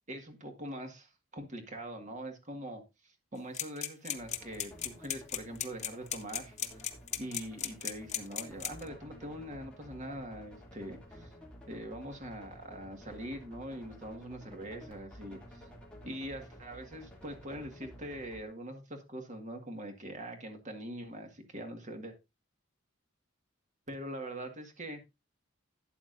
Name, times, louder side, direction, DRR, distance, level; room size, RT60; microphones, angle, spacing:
voice 1, 0.1-6.9 7.2-11.3 11.7-15.7 16.0-22.1 23.9-25.0, right 1 dB, 35° right, 5 dB, 1.8 m, -43 dB
sound 1, 3.5-8.9, left 10 dB, 35° left, 0.9 m, -35 dB
sound 2, 4.1-18.4, equal, 5° left, 2.7 m, -53 dB
12.0 x 8.5 x 2.6 m, 0.24 s
head